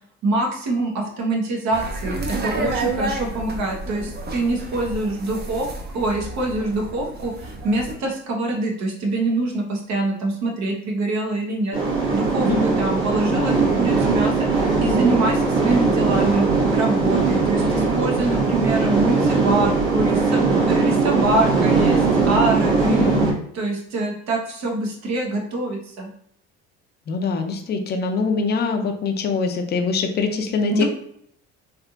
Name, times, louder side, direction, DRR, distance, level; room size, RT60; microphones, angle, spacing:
voice 1, 0.2-5.7 5.9-11.8 12.1-16.4 16.7-23.1 23.5-26.1 30.7-30.8, right 2 dB, 60° right, 0 dB, 1.0 m, -24 dB
sound 1, 1.7-7.9, right 2 dB, 30° right, 0.7 m, -30 dB
sound 2, 11.7-23.3, right 4 dB, 75° right, 1.4 m, -20 dB
voice 2, 22.9-23.3 27.1-30.8, left 4 dB, 30° left, 4 dB, 0.6 m, -23 dB
3.4 x 2.7 x 2.5 m, 0.69 s
supercardioid pair, 80°, 32 cm